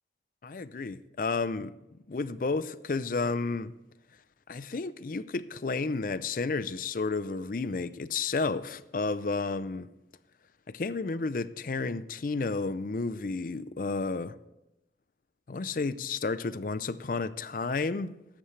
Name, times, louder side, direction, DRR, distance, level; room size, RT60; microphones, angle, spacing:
voice 1, 0.4-1.7 2.1-3.7 4.5-9.9 10.7-14.3 15.5-18.1, left 4 dB, 50° left, 0.5 m, -31 dB
15.0 x 11.5 x 3.3 m
head